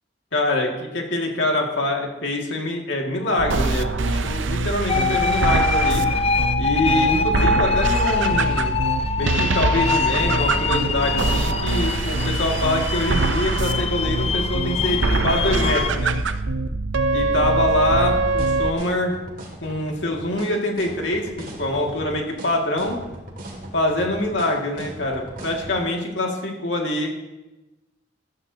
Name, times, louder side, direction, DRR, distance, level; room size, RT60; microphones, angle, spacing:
voice 1, 0.3-6.0 6.6-8.8 9.2-16.1 17.1-19.1 19.6-23.0 23.7-27.1, left 1 dB, 70° left, 1 dB, 2.2 m, -24 dB
sound 1, 3.4-18.7, right 3 dB, 75° right, 0.7 m, -23 dB
sound 2, 4.9-15.9, left 5 dB, 30° left, 0.5 m, -24 dB
sound 3, 17.9-25.8, right 1 dB, 50° right, 2.3 m, -38 dB
15.0 x 12.5 x 2.9 m, 1.0 s
head